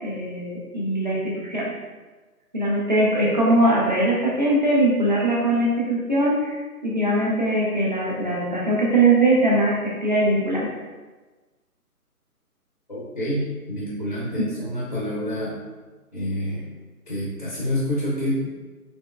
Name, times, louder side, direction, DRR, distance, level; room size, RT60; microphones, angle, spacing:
voice 1, 0.0-1.7 2.5-6.6 6.8-10.7, right 1 dB, 30° right, -6 dB, 0.5 m, -21 dB
voice 2, 12.9-15.6 16.1-16.7 17.1-18.4, equal, 30° left, -7 dB, 0.5 m, -27 dB
3.5 x 3.0 x 2.3 m, 1.3 s
figure-of-eight pair, 150°, 46 cm